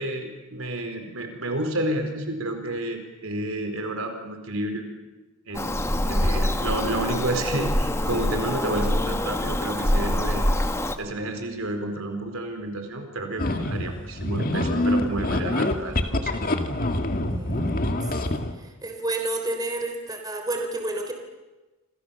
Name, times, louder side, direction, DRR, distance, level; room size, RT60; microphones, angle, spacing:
voice 1, 0.0-4.8 5.5-10.5 11.0-16.4, right 1 dB, 65° right, 6 dB, 4.4 m, -30 dB
Bird vocalization bird call bird song, 5.5-11.0, left 1 dB, 15° left, 1.5 m, -25 dB
voice 2, 5.7-6.1 17.3-17.8 18.2-21.1, right 2 dB, 20° right, 4 dB, 3.6 m, -31 dB
sound 1, 13.4-18.5, left 1 dB, 40° left, 2.1 m, -25 dB
28.0 x 27.0 x 7.1 m, 1.1 s
head